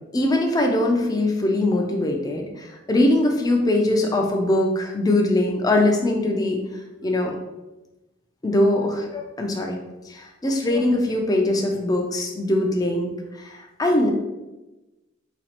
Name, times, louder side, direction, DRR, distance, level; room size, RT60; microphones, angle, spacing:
voice 1, 0.1-6.6 7.0-7.3 8.4-9.8 10.1-13.1 13.4-14.1, left 1 dB, 20° left, 1 dB, 0.4 m, -22 dB
4.1 x 2.4 x 2.8 m, 1.0 s
head